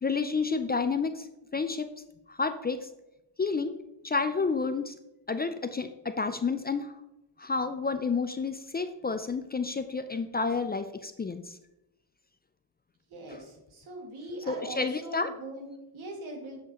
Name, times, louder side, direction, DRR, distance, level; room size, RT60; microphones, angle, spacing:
voice 1, 0.0-1.3 1.5-1.9 2.3-2.8 3.4-3.7 4.0-4.9 5.3-6.9 7.4-11.6 13.3-13.4 14.5-15.3, left 4 dB, 25° left, 9 dB, 0.3 m, -30 dB
voice 2, 13.1-16.6, right 1 dB, 90° right, 0 dB, 2.1 m, -41 dB
7.3 x 7.2 x 2.9 m, 0.92 s
cardioid pair, 95°, 47 cm